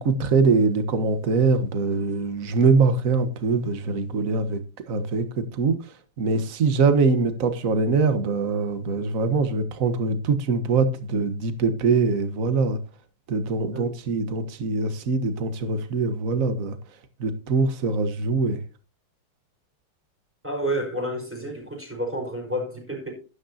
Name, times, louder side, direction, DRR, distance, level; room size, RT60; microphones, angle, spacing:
voice 1, 0.0-4.6 4.9-5.8 6.2-12.8 13.3-16.8 17.2-18.6, right 4 dB, 45° right, 1.5 m, -23 dB
voice 2, 20.4-23.1, right 1 dB, 5° right, 5.1 m, -30 dB
12.5 x 11.5 x 2.8 m
omnidirectional pair, 2.4 m